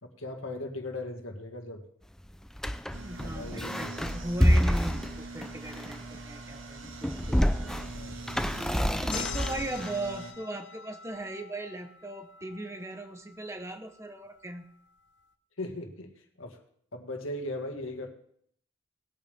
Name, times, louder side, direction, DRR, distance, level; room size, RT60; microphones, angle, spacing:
voice 1, 0.0-1.8 3.2-4.0 8.0-8.4 15.6-16.1 16.4-16.6 16.9-18.1, left 2 dB, 90° left, 4 dB, 1.9 m, -38 dB
sound 1, 2.5-6.2 6.8-9.9, equal, 5° left, 0.4 m, -28 dB
voice 2, 2.9-7.5 8.2-8.3 8.5-14.6, right 1 dB, 15° right, 7 dB, 1.0 m, -38 dB
sound 2, 2.9-10.3, right 3 dB, 75° right, 1.5 m, -44 dB
sound 3, 9.1-14.3, left 8 dB, 60° left, 0.7 m, -44 dB
19.5 x 8.9 x 3.6 m, 0.66 s
head